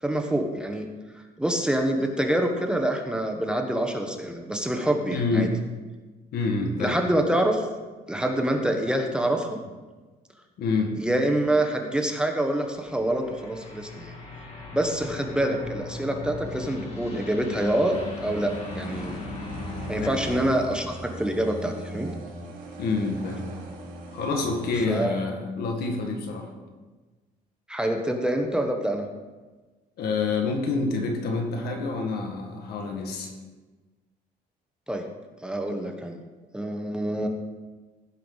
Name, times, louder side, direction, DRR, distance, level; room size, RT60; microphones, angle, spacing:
voice 1, 0.0-0.9 1.4-5.5 6.8-7.7 8.1-9.6 11.0-14.1 14.7-19.2 19.9-22.1 24.9-25.2 27.7-29.0 34.9-35.1 35.4-36.2 36.5-37.3, right 1 dB, 5° right, 3 dB, 1.0 m, -26 dB
voice 2, 5.1-5.5 6.3-7.0 10.6-10.9 20.0-20.1 22.8-23.5 24.1-26.5 30.0-33.3, left 3 dB, 70° left, 2 dB, 1.8 m, -27 dB
sound 1, 12.7-20.4, left 3 dB, 35° left, 2.0 m, -38 dB
sound 2, 17.9-24.7, right 1 dB, 60° right, 2.9 m, -39 dB
16.5 x 5.6 x 4.0 m, 1.3 s
cardioid pair, 110°, 17 cm